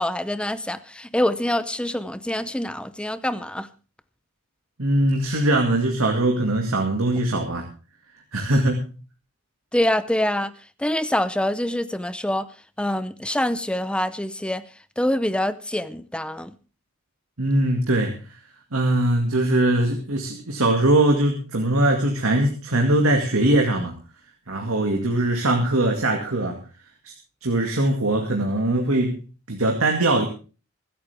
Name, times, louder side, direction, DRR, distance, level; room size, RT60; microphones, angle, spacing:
voice 1, 0.0-3.7 9.7-10.5 10.8-12.5 12.8-14.6 15.0-16.6, left 1 dB, 5° left, 0.6 m, -25 dB
voice 2, 4.8-7.6 8.3-8.9 17.4-18.2 18.7-23.9 24.5-26.6 27.0-27.1 27.4-29.2 29.5-30.3, right 1 dB, 90° right, 2.1 m, -21 dB
25.0 x 8.7 x 3.5 m
head